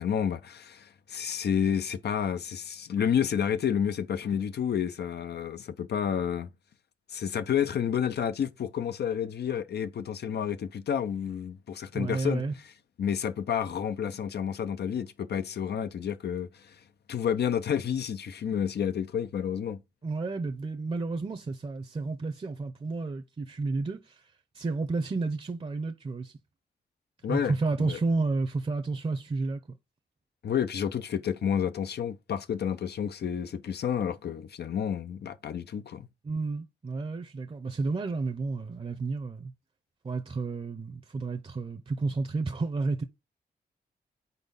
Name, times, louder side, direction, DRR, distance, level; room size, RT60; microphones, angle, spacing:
voice 1, 0.0-6.5 7.1-12.4 13.0-16.8 17.1-19.8 27.2-28.0 30.4-36.1, left 8 dB, 70° left, 0.6 m, -30 dB
voice 2, 11.9-12.5 20.0-24.2 24.5-26.3 27.3-29.8 36.2-39.5 40.0-43.0, right 3 dB, 30° right, 0.7 m, -31 dB
4.4 x 4.1 x 5.3 m
cardioid pair, 65°, 18 cm